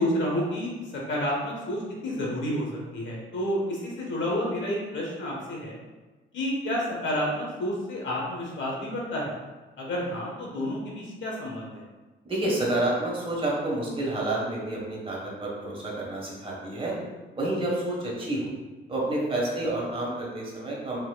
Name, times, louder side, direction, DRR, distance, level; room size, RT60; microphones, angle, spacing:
voice 1, 0.0-5.8 6.3-9.3 9.8-11.8, equal, 70° left, -3 dB, 1.3 m, -30 dB
voice 2, 12.2-16.9 17.3-18.5 18.9-21.0, right 1 dB, 30° right, -4 dB, 1.4 m, -29 dB
4.2 x 4.0 x 2.4 m, 1.2 s
cardioid pair, 90°, 20 cm